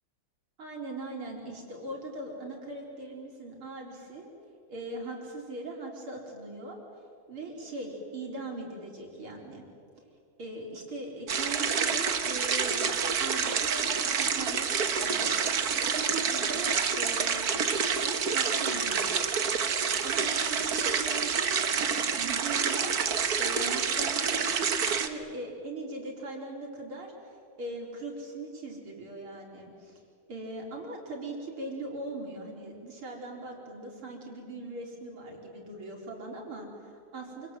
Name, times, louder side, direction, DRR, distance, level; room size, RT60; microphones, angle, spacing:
voice 1, 0.6-4.3 4.7-6.8 7.3-9.6 10.4-15.3 15.9-19.1 19.7-21.9 22.2-23.0 23.4-27.1 27.6-30.0 30.3-37.6, right 2 dB, 85° right, 0 dB, 5.2 m, -40 dB
sound 1, 11.3-25.1, right 6 dB, 50° right, 1.6 m, -28 dB
27.5 x 27.0 x 7.8 m, 2.4 s
omnidirectional pair, 2.3 m